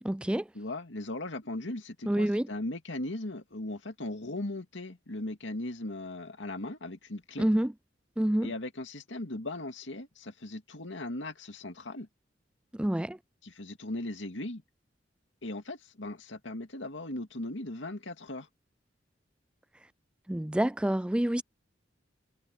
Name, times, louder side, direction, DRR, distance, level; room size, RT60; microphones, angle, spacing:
voice 1, 0.0-0.5 2.1-2.5 7.4-7.7 8.2-8.5 12.7-13.2 20.3-21.4, right 1 dB, 5° right, 0.3 m, -27 dB
voice 2, 0.5-7.4 8.4-12.1 13.4-14.6 15.4-18.5, left 2 dB, 90° left, 2.3 m, -38 dB
head